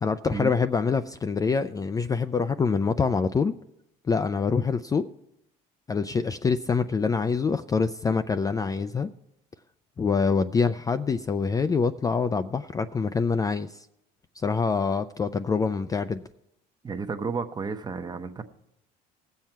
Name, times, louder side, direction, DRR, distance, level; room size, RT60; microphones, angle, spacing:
voice 1, 0.0-3.5 4.1-5.1 5.9-9.1 10.0-13.9 14.4-16.2, left 5 dB, 20° left, 0.4 m, -25 dB
voice 2, 16.8-18.4, right 5 dB, 25° right, 0.9 m, -32 dB
18.0 x 7.5 x 4.5 m
cardioid pair, 105°, 18 cm